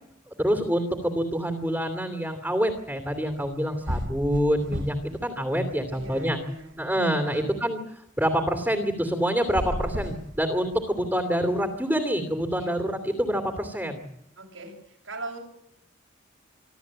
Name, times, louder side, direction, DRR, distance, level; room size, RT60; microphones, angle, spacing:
voice 1, 0.4-5.0 5.2-6.4 6.8-7.8 8.2-14.0, equal, 10° right, 5 dB, 2.7 m, -26 dB
sound 1, 3.4-3.5 3.8-5.2 5.5-6.6 9.4-10.9, equal, 70° right, 3.6 m, -33 dB
voice 2, 5.9-6.8 7.2-7.5 12.6-12.7 14.4-15.4, right 2 dB, 85° right, 1 dB, 6.7 m, -40 dB
26.5 x 13.5 x 8.8 m, 0.78 s
head